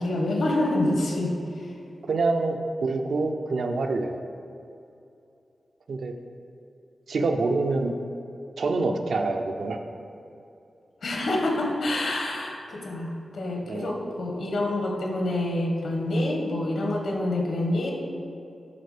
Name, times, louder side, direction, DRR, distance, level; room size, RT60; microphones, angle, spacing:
voice 1, 0.0-1.7 11.0-17.9, left 1 dB, 75° left, 0 dB, 1.5 m, -27 dB
voice 2, 2.1-4.2 5.9-6.2 7.1-7.9 8.6-9.8 13.7-13.9, right 3 dB, 70° right, 4 dB, 0.6 m, -26 dB
11.0 x 4.2 x 5.0 m, 2.6 s
wide cardioid pair, 145°, 0 cm